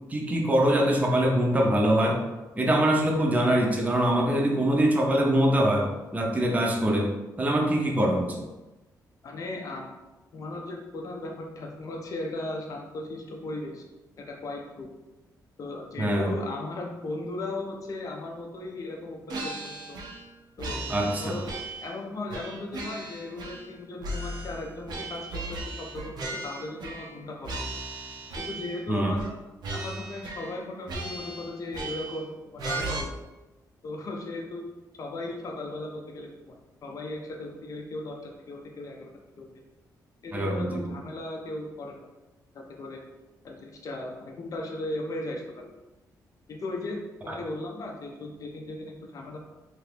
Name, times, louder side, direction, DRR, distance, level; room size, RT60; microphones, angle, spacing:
voice 1, 0.1-2.2 2.6-8.5 16.0-16.3 20.9-21.3 28.9-29.1 40.3-40.9 47.3-47.4, right 1 dB, 20° right, 1 dB, 0.5 m, -24 dB
voice 2, 9.2-9.9 10.3-13.8 14.3-14.9 15.6-20.0 20.6-20.8 21.2-21.5 21.8-27.6 28.4-29.3 29.7-33.2 33.8-34.7 35.0-36.6 36.8-39.1 39.4-39.5 40.2-42.1 42.5-43.0 43.4-45.7 46.5-49.4, left 2 dB, 50° left, 1 dB, 0.5 m, -37 dB
sound 1, 19.3-20.3 20.6-22.0 22.3-23.7 24.0-27.2 27.4-28.8 29.2-29.4 29.6-30.6 30.9-32.2 32.6-33.0, right 2 dB, 75° right, 0.5 m, -36 dB
2.8 x 2.4 x 3.3 m, 1.1 s
cardioid pair, 95°, 7 cm